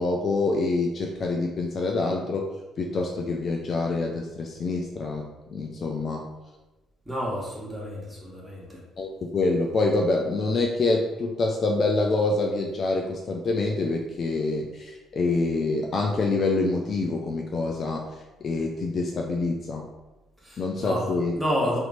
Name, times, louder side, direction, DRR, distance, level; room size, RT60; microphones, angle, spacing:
voice 1, 0.0-2.4 2.8-5.2 5.5-6.2 9.0-18.0 18.4-19.8 20.6-21.4, left 3 dB, 40° left, 1 dB, 0.3 m, -26 dB
voice 2, 7.0-8.8 20.4-21.8, equal, 5° right, -5 dB, 1.3 m, -30 dB
2.8 x 2.6 x 4.0 m, 1.1 s
figure-of-eight pair, 45°, 0 cm